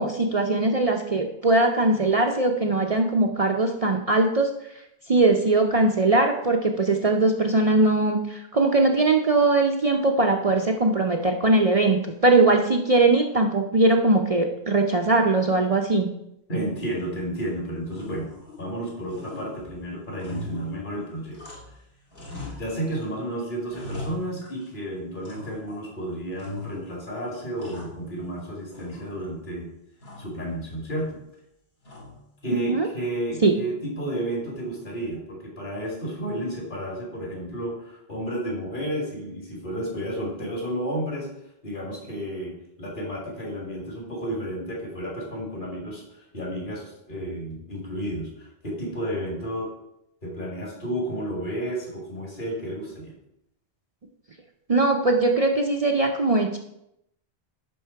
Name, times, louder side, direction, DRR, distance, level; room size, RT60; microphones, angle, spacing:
voice 1, 0.0-4.5 5.1-16.1 32.5-32.9 33.4-33.5 54.7-56.6, right 2 dB, 40° right, 2 dB, 0.7 m, -21 dB
voice 2, 16.5-18.3 18.6-21.4 22.6-29.7 30.2-31.2 32.4-41.3 41.6-49.7 50.2-53.1, right 1 dB, 50° left, -3 dB, 2.6 m, -32 dB
sound 1, 16.9-17.5 17.9-18.8 19.1-21.8 22.1-23.1 23.4-24.8 25.2-25.9 26.4-27.0 27.3-28.4 28.7-29.4 30.0-30.4 31.8-32.4, left 2 dB, 75° left, 2.4 m, -41 dB
11.0 x 3.8 x 5.7 m, 0.80 s
omnidirectional pair, 1.1 m